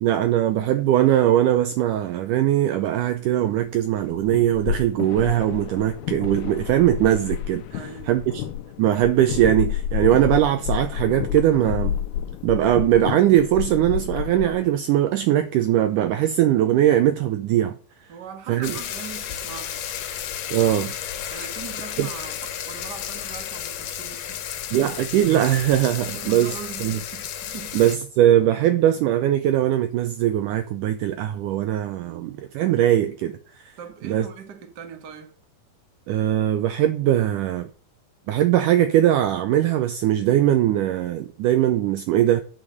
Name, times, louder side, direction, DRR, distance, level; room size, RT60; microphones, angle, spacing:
voice 1, 0.0-7.8 8.1-8.4 8.8-12.0 12.4-17.8 18.5-18.8 20.5-20.9 22.0-22.1 24.7-26.5 26.8-27.0 27.7-33.4 33.6-33.7 34.0-34.3 36.1-37.7 38.3-42.4, right 12 dB, 80° right, 1.8 m, -20 dB
sound 1, 3.9-14.7, left 10 dB, 85° left, 2.6 m, -30 dB
voice 2, 7.7-8.2 18.1-19.9 21.3-24.5 24.7-24.9 26.1-27.8 32.0-32.4 33.8-35.3, right 8 dB, 60° right, 1.0 m, -40 dB
sound 2, 18.6-28.0, left 10 dB, 70° left, 2.5 m, -33 dB
9.4 x 6.5 x 6.6 m
omnidirectional pair, 4.4 m